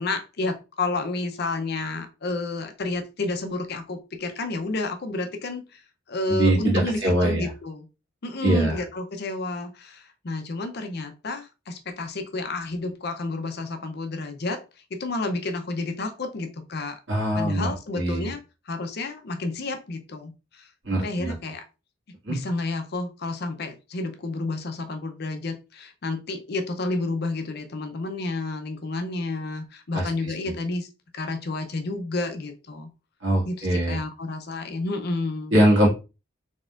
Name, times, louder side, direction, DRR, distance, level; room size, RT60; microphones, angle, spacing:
voice 1, 0.0-5.8 6.1-7.9 8.2-14.6 14.9-17.0 17.3-18.4 18.7-20.7 21.0-21.6 22.3-30.9 31.1-32.9 33.4-35.6, left 2 dB, 55° left, 7 dB, 0.6 m, -30 dB
voice 2, 6.3-7.5 8.4-8.7 17.1-17.7 17.9-18.3 20.9-21.3 22.3-22.4 29.9-30.3 33.2-34.0 35.5-35.9, right 1 dB, 70° right, -2 dB, 1.7 m, -22 dB
4.1 x 3.6 x 2.4 m, 0.29 s
head